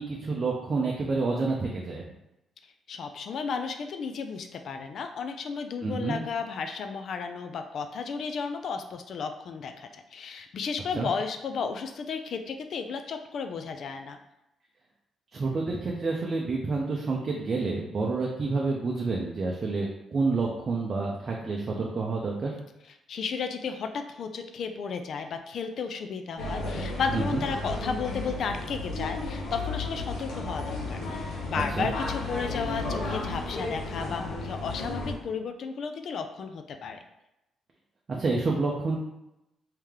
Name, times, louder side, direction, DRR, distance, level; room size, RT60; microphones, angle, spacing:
voice 1, 0.0-2.0 5.8-6.2 10.9-11.1 15.3-22.5 27.1-27.4 31.8-31.9 38.1-39.0, right 3 dB, 35° right, -2 dB, 0.5 m, -29 dB
voice 2, 2.9-14.2 23.1-37.0, left 5 dB, 60° left, 7 dB, 0.3 m, -33 dB
sound 1, 26.4-35.1, left 2 dB, 85° left, 0.9 m, -33 dB
3.2 x 2.8 x 3.5 m, 0.88 s
cardioid pair, 130°, 0 cm